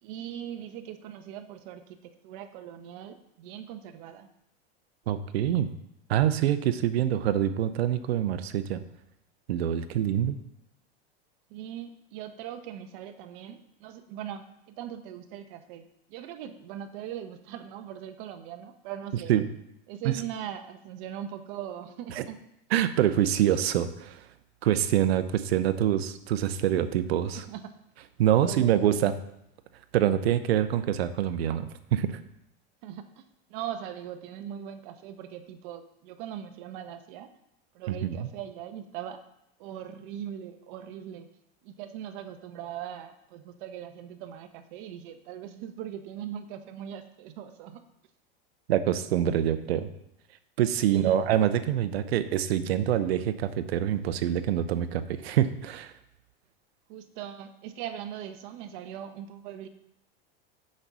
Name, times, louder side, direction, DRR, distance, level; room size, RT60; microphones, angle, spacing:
voice 1, 0.0-4.3 11.5-19.3 19.9-22.4 27.3-27.7 28.0-28.1 28.4-28.9 32.8-37.3 37.7-39.2 39.6-41.3 41.6-47.8 50.8-51.3 56.9-59.7, right 10 dB, 60° right, 8 dB, 1.0 m, -40 dB
voice 2, 5.1-5.7 6.1-8.8 9.5-10.4 19.3-19.4 20.0-20.2 22.1-22.2 22.7-24.2 24.6-27.4 28.2-29.1 29.9-32.2 37.9-38.3 48.7-49.9 50.6-55.9, right 11 dB, 85° right, 11 dB, 0.8 m, -25 dB
6.5 x 5.5 x 6.1 m, 0.82 s
supercardioid pair, 125°, 30 cm